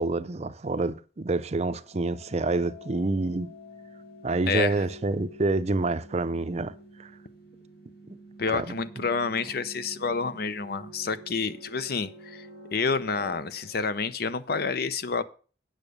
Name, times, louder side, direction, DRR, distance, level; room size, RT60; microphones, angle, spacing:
voice 1, 0.0-3.5 4.2-6.7 7.0-7.1 8.1-8.2 8.5-8.8, right 2 dB, 40° right, 0.6 m, -27 dB
sound 1, 1.8-14.6, right 1 dB, 80° left, 5.4 m, -48 dB
voice 2, 8.4-15.2, left 5 dB, 60° left, 0.7 m, -29 dB
9.0 x 6.4 x 6.6 m
head